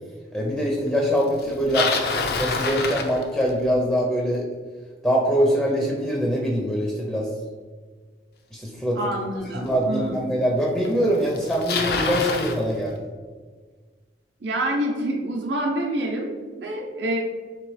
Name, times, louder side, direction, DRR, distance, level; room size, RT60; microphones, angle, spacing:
voice 1, 0.3-1.9 2.4-4.4 5.0-7.3 8.5-9.0 9.5-13.0, equal, 5° left, -2 dB, 0.5 m, -23 dB
Bicycle, 1.4-3.7 8.8-8.9 9.7-9.8 10.8-10.9 11.1-12.6, left 4 dB, 60° left, 0.5 m, -26 dB
voice 2, 9.0-10.4 14.4-17.2, right 1 dB, 70° right, 0 dB, 0.6 m, -27 dB
3.3 x 3.0 x 4.7 m, 1.5 s
head